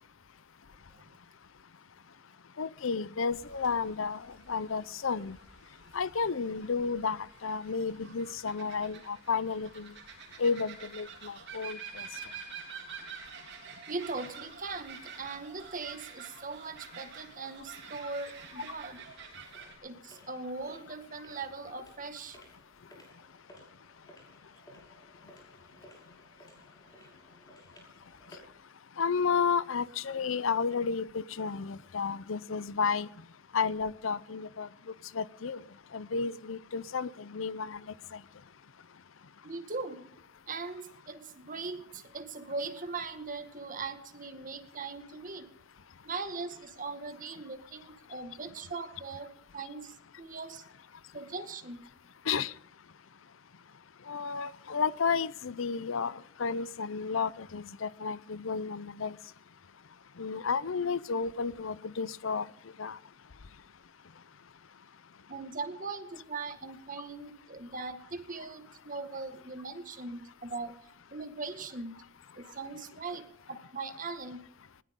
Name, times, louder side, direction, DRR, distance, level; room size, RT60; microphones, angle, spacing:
voice 1, 2.6-5.4 5.9-9.9 10.4-12.1 18.6-18.7 29.0-33.1 33.5-34.7 35.1-35.6 35.9-37.8 38.1-38.2 52.3-52.5 54.1-59.1 60.2-62.5 62.8-63.0, left 5 dB, 75° left, 0.7 m, -32 dB
sound 1, 3.3-19.8, right 6 dB, 60° right, 4.0 m, -48 dB
voice 2, 13.9-19.0 19.8-22.4 25.7-25.9 26.9-27.0 39.4-40.1 40.5-45.5 46.0-50.6 51.1-51.8 65.3-70.7 71.1-72.0 72.4-74.4, right 3 dB, 40° right, 1.8 m, -40 dB
sound 2, 18.3-28.6, equal, 20° left, 6.4 m, -58 dB
20.0 x 19.0 x 3.8 m
head